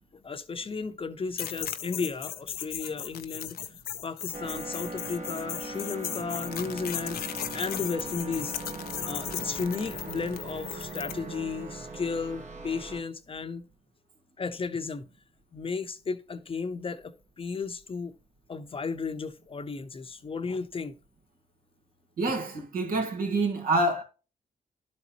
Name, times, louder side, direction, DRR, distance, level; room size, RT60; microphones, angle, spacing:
voice 1, 0.1-3.6 4.0-8.5 9.0-13.7 14.4-15.1 15.5-18.1 18.5-20.9, left 4 dB, 35° left, 0.8 m, -34 dB
sound 1, 1.4-11.2, left 10 dB, 75° left, 0.6 m, -37 dB
sound 2, 4.3-13.0, right 2 dB, 50° right, 1.7 m, -40 dB
voice 2, 22.2-24.0, right 2 dB, 65° right, 1.9 m, -27 dB
11.5 x 4.1 x 3.0 m
supercardioid pair, 55°, 16 cm